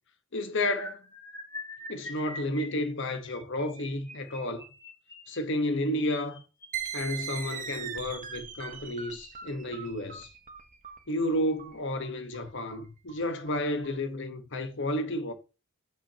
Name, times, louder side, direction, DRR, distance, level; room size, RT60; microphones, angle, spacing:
voice 1, 0.3-1.0 1.9-4.6 5.3-6.4 6.9-10.3 11.1-15.3, left 1 dB, 60° left, 1.2 m, -31 dB
sound 1, 0.7-7.9 8.6-8.9 9.2-9.4 9.7-9.9, left 2 dB, 15° left, 4.7 m, -46 dB
sound 2, 6.7-14.0, right 8 dB, 40° right, 1.1 m, -40 dB
14.0 x 6.1 x 2.9 m
head